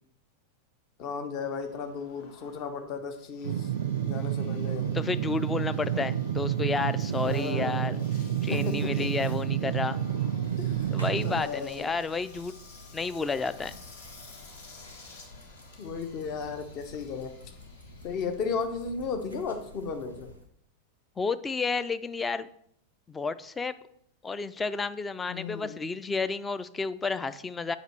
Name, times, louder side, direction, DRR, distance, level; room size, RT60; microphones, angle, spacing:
voice 1, 1.0-3.7 4.0-4.9 5.9-6.0 7.2-9.1 10.6-10.9 11.2-11.9 15.1-15.2 15.8-17.3 18.0-20.3 25.3-25.8, left 5 dB, 40° left, 7 dB, 0.9 m, -35 dB
Engine, 1.4-19.8, left 3 dB, 55° left, 1.3 m, -54 dB
sound 1, 3.4-11.4, right 10 dB, 60° right, 0.4 m, -29 dB
voice 2, 4.9-8.0 8.4-10.0 10.9-12.6 12.9-13.7 21.2-22.5 23.1-23.8 24.2-27.8, left 4 dB, 15° left, 14 dB, 0.4 m, -31 dB
sound 2, 10.4-20.4, left 1 dB, 85° left, 1.3 m, -50 dB
8.2 x 5.3 x 4.4 m, 0.69 s
figure-of-eight pair, 90°, 0 cm